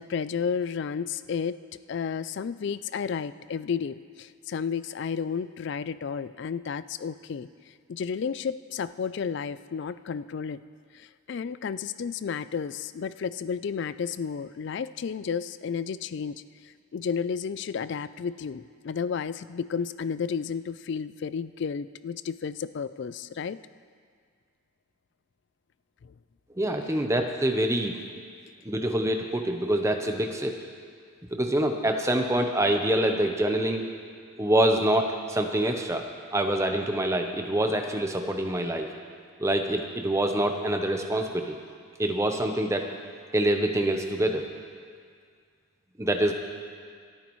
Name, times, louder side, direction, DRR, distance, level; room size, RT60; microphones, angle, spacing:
voice 1, 0.0-1.6 1.9-10.6 10.9-23.6 26.0-26.1, left 6 dB, 55° left, 15 dB, 0.3 m, -32 dB
voice 2, 26.6-27.9 28.6-30.6 31.3-33.8 34.4-36.0 36.3-38.9 39.4-41.6 42.0-42.9 43.3-44.5 46.0-46.3, right 1 dB, 15° right, 4 dB, 0.7 m, -25 dB
27.0 x 9.4 x 3.1 m, 2.1 s
head